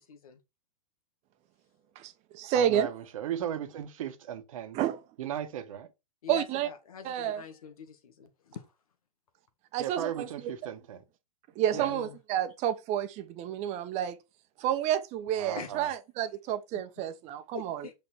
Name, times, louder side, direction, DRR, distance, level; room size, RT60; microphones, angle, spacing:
voice 1, 0.1-0.4 6.2-8.7 11.7-12.2 15.6-15.7 16.7-16.8 17.5-17.9, left 7 dB, 65° left, 2.1 m, -44 dB
voice 2, 1.9-2.9 4.7-5.0 6.3-6.7 7.0-7.4 9.7-10.3 11.5-14.2 14.6-17.9, right 10 dB, 35° right, 1.2 m, -30 dB
voice 3, 2.5-4.8 5.2-5.9 9.8-11.0 11.7-11.9 15.4-15.9, right 10 dB, 60° right, 1.5 m, -36 dB
6.7 x 5.4 x 4.5 m
hypercardioid pair, 110°, 20 cm